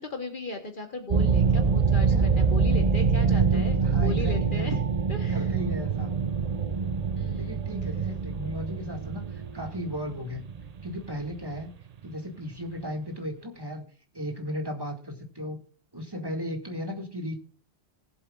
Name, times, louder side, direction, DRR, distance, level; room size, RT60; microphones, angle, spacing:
voice 1, 0.0-4.8 5.1-5.5 7.1-7.6, left 2 dB, 50° left, 5 dB, 1.4 m, -37 dB
sound 1, 1.1-12.1, right 5 dB, 45° right, 0.6 m, -25 dB
voice 2, 2.0-2.4 3.3-4.7 5.3-6.1 7.3-10.4 10.8-11.7 12.0-13.8 14.1-15.6 15.9-17.3, equal, 20° right, 2 dB, 1.9 m, -35 dB
19.5 x 7.7 x 2.4 m, 0.42 s
omnidirectional pair, 1.1 m